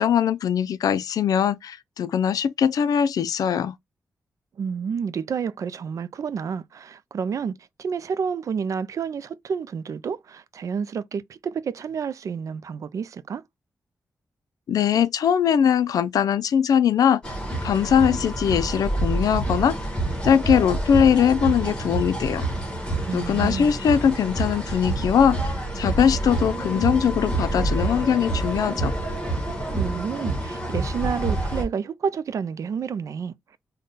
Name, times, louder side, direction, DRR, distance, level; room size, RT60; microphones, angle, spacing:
voice 1, 0.0-3.8 14.7-17.2 17.6-19.8 20.2-22.4 23.1-25.4 25.8-28.9, left 8 dB, 80° left, 0.4 m, -21 dB
voice 2, 4.6-7.5 7.8-13.4 23.0-23.8 29.7-33.6, right 6 dB, 60° right, 0.4 m, -30 dB
sound 1, 17.2-31.6, right 2 dB, 15° left, 1.3 m, -27 dB
3.7 x 2.2 x 3.9 m
wide cardioid pair, 135°, 6 cm